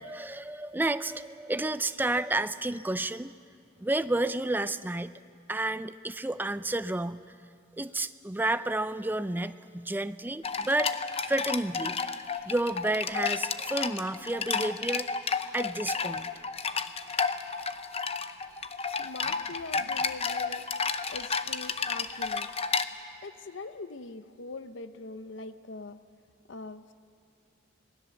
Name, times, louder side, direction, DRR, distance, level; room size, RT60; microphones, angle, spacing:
voice 1, 0.0-3.3 3.8-5.1 5.5-7.2 7.8-11.0 11.3-12.1 12.4-15.1 15.5-16.3, right 2 dB, 10° right, 13 dB, 0.5 m, -31 dB
sound 1, 10.4-22.8, left 5 dB, 30° left, 0.7 m, -32 dB
voice 2, 19.0-20.6 21.1-22.5 23.2-26.0 26.5-26.8, left 3 dB, 70° left, 11 dB, 0.8 m, -42 dB
26.5 x 19.5 x 7.1 m, 2.3 s
head